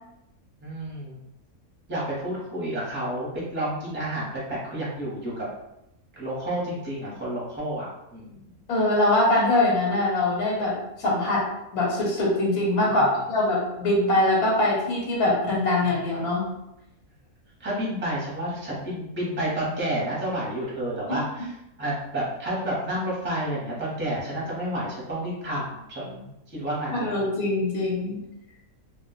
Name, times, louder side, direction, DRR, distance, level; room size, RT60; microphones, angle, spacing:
voice 1, 0.6-1.2 1.9-5.5 6.2-8.4 12.9-13.1 17.6-21.5 21.8-27.1, right 1 dB, 10° right, -6 dB, 0.8 m, -30 dB
voice 2, 8.7-11.5 11.7-16.5 26.9-28.2, left 2 dB, 85° left, -3 dB, 1.3 m, -23 dB
2.4 x 2.3 x 3.9 m, 0.87 s
omnidirectional pair, 1.5 m